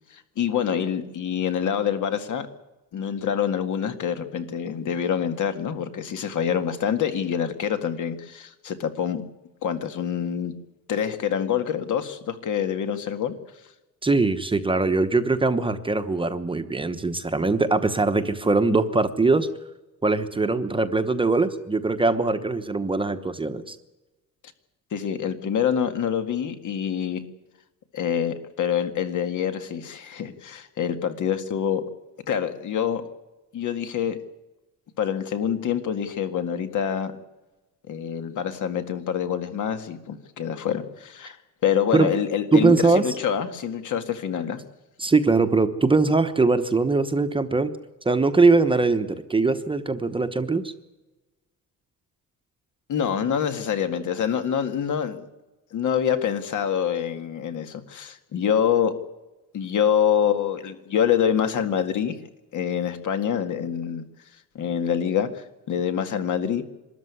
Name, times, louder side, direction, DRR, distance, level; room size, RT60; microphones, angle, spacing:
voice 1, 0.1-2.5 2.9-9.2 9.6-10.5 10.9-13.3 24.9-27.2 27.9-31.8 32.3-33.0 33.5-34.2 35.0-37.1 37.9-41.4 41.6-44.6 52.9-55.3 55.7-59.0 59.5-62.2 62.5-64.1 64.6-66.6, left 8 dB, 60° left, 8 dB, 2.0 m, -26 dB
voice 2, 14.0-19.5 20.0-23.8 41.9-42.1 42.5-43.1 45.0-47.7 48.0-50.7, right 3 dB, 15° right, 9 dB, 1.0 m, -21 dB
24.0 x 13.5 x 9.7 m, 1.1 s
cardioid pair, 160°, 34 cm